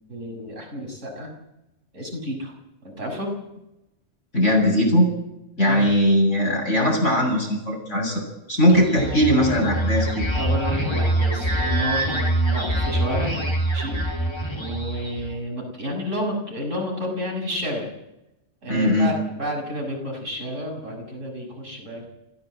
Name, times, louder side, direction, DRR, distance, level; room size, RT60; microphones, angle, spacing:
voice 1, 0.1-1.3 1.9-2.5 2.8-3.3 5.6-5.9 8.7-8.8 10.3-13.4 13.7-14.3 14.5-17.9 18.6-22.1, equal, 80° right, 0 dB, 6.8 m, -30 dB
voice 2, 4.3-5.1 5.6-10.3 18.7-19.2, equal, 75° left, -1 dB, 8.2 m, -20 dB
sound 1, 8.7-15.3, right 1 dB, 20° left, 3.4 m, -24 dB
26.0 x 15.5 x 7.8 m, 0.92 s
omnidirectional pair, 1.3 m